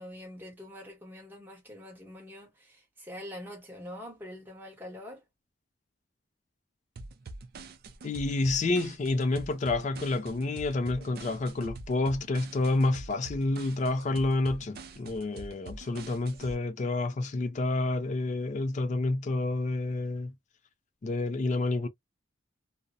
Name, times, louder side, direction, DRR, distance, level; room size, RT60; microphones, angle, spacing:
voice 1, 0.0-5.2, left 1 dB, 10° right, 1.0 m, -44 dB
sound 1, 7.0-16.6, right 2 dB, 50° right, 0.4 m, -45 dB
voice 2, 8.0-20.3 21.0-21.9, left 2 dB, 35° left, 0.3 m, -29 dB
2.7 x 2.0 x 2.3 m
head